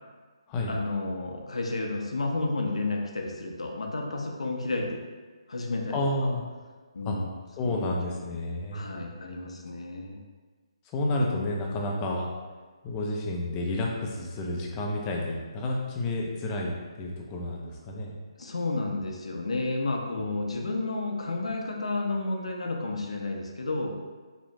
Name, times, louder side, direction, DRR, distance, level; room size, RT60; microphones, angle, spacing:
voice 1, 0.7-5.0 5.5-6.0 6.9-8.2 8.7-10.2 18.4-23.9, left 2 dB, 85° left, 1 dB, 0.5 m, -31 dB
voice 2, 5.9-6.4 7.0-7.2 7.6-8.9 10.9-12.3 12.8-18.1 20.2-20.3, left 1 dB, 20° left, -1 dB, 0.3 m, -30 dB
3.0 x 2.0 x 2.6 m, 1.4 s
hypercardioid pair, 155°, 3 cm